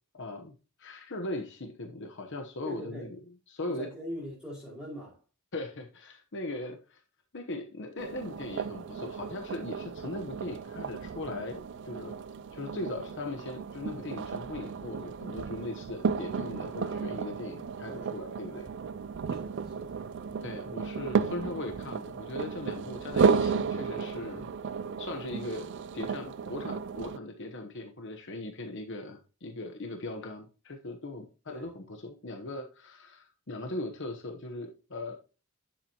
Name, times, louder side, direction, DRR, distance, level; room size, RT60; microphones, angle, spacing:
voice 1, 0.1-3.2 3.5-3.9 5.5-7.0 7.3-12.2 12.5-18.7 20.4-24.5 25.0-35.2, left 2 dB, 55° left, 1.0 m, -39 dB
voice 2, 2.6-3.1 3.6-5.2 17.9-18.2 19.3-20.0 31.5-31.7, equal, 5° right, 5.3 m, -42 dB
sound 1, 8.0-27.2, right 5 dB, 55° right, 0.4 m, -33 dB
10.0 x 7.4 x 2.9 m
head